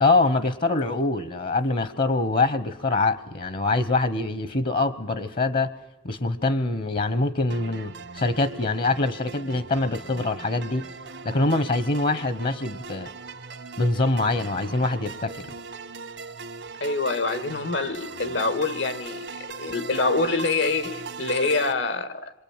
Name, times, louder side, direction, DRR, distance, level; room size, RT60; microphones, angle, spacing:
voice 1, 0.0-5.7 6.0-10.9 11.2-13.1 13.8-15.5, left 3 dB, 50° left, 13 dB, 0.9 m, -24 dB
sound 1, 7.5-21.7, right 4 dB, 80° right, 1.4 m, -39 dB
voice 2, 16.8-22.3, left 3 dB, 90° left, 9 dB, 1.9 m, -26 dB
27.0 x 23.5 x 8.8 m, 0.89 s
head